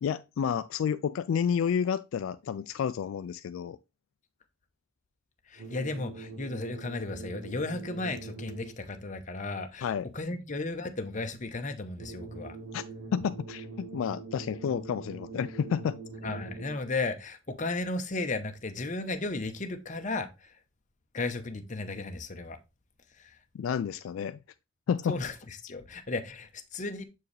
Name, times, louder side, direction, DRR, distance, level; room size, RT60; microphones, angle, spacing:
voice 1, 0.0-3.8 9.8-10.0 12.7-12.8 13.1-16.0 23.5-24.4 24.9-25.2, left 7 dB, 75° left, 0.3 m, -30 dB
voice 2, 5.5-12.6 16.2-20.6 21.1-22.6 23.2-23.4 25.1-27.0, left 3 dB, 40° left, 0.8 m, -35 dB
sound 1, 5.6-9.0 12.0-17.0, right 3 dB, 65° right, 0.9 m, -43 dB
7.1 x 4.6 x 3.2 m
head